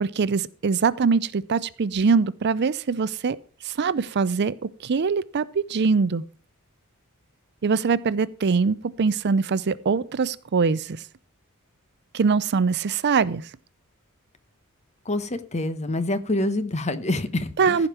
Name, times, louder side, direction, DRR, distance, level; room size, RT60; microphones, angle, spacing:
voice 1, 0.0-3.4 3.6-6.2 7.6-11.0 12.1-13.5 17.6-17.9, right 5 dB, 50° right, 0.5 m, -23 dB
voice 2, 15.1-17.8, left 2 dB, 30° left, 0.9 m, -26 dB
15.0 x 5.2 x 5.8 m
head